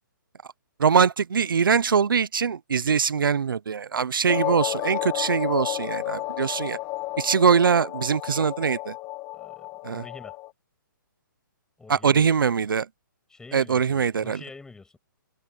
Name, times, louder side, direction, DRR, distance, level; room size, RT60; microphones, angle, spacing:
voice 1, 0.8-6.8 7.2-8.9 9.8-10.0 11.9-12.9 13.5-14.4, right 6 dB, 85° right, 1.0 m, -22 dB
sound 1, 4.3-10.5, left 18 dB, 25° left, 1.4 m, -32 dB
voice 2, 9.3-10.4 11.8-12.3 13.3-15.0, left 3 dB, 5° left, 6.6 m, -46 dB
hypercardioid pair, 150°, 11 cm